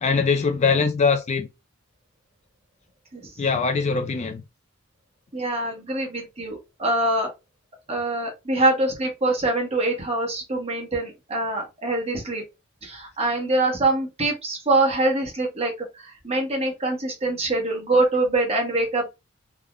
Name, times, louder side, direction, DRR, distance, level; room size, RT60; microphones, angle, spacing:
voice 1, 0.0-1.5 3.4-4.4, left 5 dB, 35° left, 0.3 m, -22 dB
voice 2, 5.3-7.3 7.9-12.4 12.8-19.1, right 2 dB, 30° right, 0.9 m, -24 dB
3.3 x 2.1 x 2.4 m
head